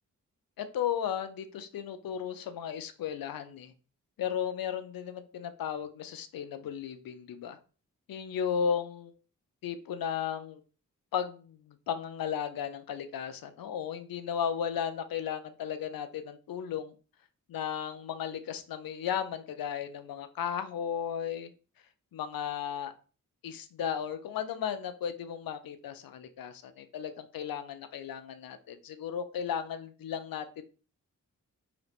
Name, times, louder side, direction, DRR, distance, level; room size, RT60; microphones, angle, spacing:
voice 1, 0.6-3.7 4.2-7.6 8.1-9.1 9.6-10.6 11.1-16.9 17.5-21.5 22.1-22.9 23.4-30.6, left 8 dB, 85° left, 10 dB, 0.6 m, -35 dB
3.9 x 2.8 x 3.4 m, 0.36 s
cardioid pair, 55°, 34 cm